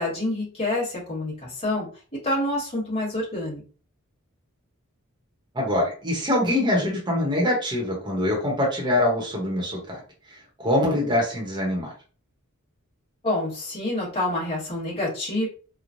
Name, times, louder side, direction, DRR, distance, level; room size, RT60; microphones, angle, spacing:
voice 1, 0.0-1.9 2.2-3.6 13.2-15.5, left 1 dB, 25° left, -6 dB, 1.3 m, -27 dB
voice 2, 5.5-10.0 10.3-11.9, left 1 dB, 20° right, -2 dB, 0.8 m, -24 dB
3.0 x 2.1 x 2.6 m, 0.38 s
head